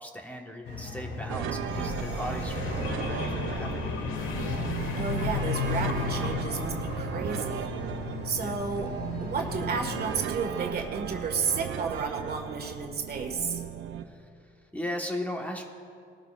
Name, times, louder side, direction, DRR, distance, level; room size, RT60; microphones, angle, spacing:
voice 1, 0.0-4.2 8.4-8.6 14.0-14.3 14.7-15.6, equal, 5° left, 1 dB, 1.4 m, -37 dB
sound 1, 0.6-10.1, left 5 dB, 60° left, 3.2 m, -39 dB
sound 2, 1.3-14.0, right 9 dB, 80° right, 0.7 m, -36 dB
sound 3, 1.7-8.7 9.5-10.4, left 6 dB, 85° left, 1.5 m, -34 dB
voice 2, 5.0-7.7 8.2-8.9 9.2-13.6, right 5 dB, 50° right, 2 dB, 1.7 m, -32 dB
20.0 x 13.0 x 2.5 m, 2.4 s
cardioid pair, 90°, 20 cm